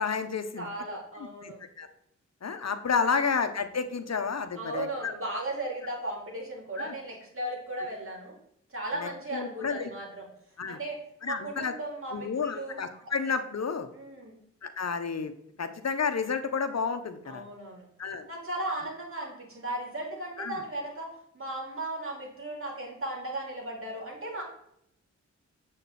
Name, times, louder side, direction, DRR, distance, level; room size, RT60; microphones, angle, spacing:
voice 1, 0.0-0.7 1.4-1.9 2.4-5.1 6.8-6.9 9.0-9.9 10.6-10.8 11.2-11.7 12.1-13.9 14.6-15.3 15.6-17.4 18.0-18.3 20.4-20.5, left 5 dB, 60° left, 8 dB, 1.1 m, -31 dB
voice 2, 0.6-1.6 4.6-8.3 8.7-10.3 10.7-12.7 13.9-14.3 17.2-17.8 18.3-21.1 21.3-24.4, right 1 dB, 50° right, -3 dB, 4.4 m, -36 dB
8.8 x 7.4 x 4.2 m, 0.73 s
cardioid pair, 65°, 29 cm